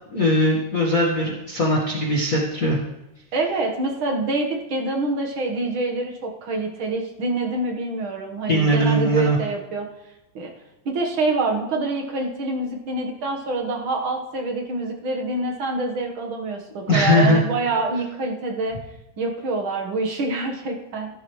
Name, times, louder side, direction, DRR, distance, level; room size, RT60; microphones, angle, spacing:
voice 1, 0.1-2.8 8.5-9.4 16.9-17.4, equal, 40° left, -4 dB, 1.2 m, -20 dB
voice 2, 3.3-9.9 10.3-10.5 10.8-18.8 19.2-21.1, right 2 dB, 50° right, 1 dB, 1.7 m, -26 dB
16.0 x 12.5 x 3.2 m, 0.95 s
omnidirectional pair, 3.8 m